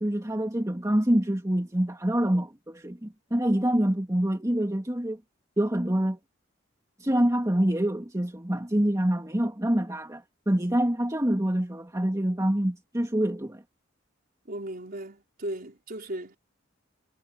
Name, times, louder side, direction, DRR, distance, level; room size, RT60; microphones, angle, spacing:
voice 1, 0.0-5.2 5.6-6.2 7.0-13.6, right 1 dB, 15° right, 2.2 m, -26 dB
voice 2, 14.5-16.4, right 1 dB, 50° right, 4.6 m, -36 dB
head